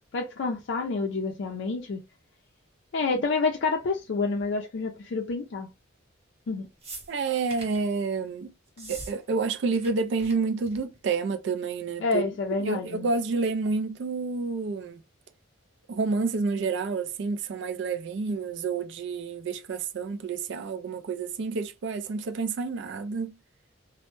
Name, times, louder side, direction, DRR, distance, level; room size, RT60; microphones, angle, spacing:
voice 1, 0.1-2.0 2.9-5.7 6.5-6.7 8.8-8.9 12.0-13.1, left 4 dB, 65° left, 0.4 m, -28 dB
sound 1, 6.8-7.8 8.7-9.1 9.4-9.9 10.2-10.3 10.6-11.0 11.9-12.0, right 3 dB, 30° right, 0.9 m, -42 dB
voice 2, 7.1-8.5 8.9-12.3 12.6-15.0 15.9-23.4, right 4 dB, 60° right, 0.3 m, -29 dB
2.1 x 2.0 x 3.0 m
head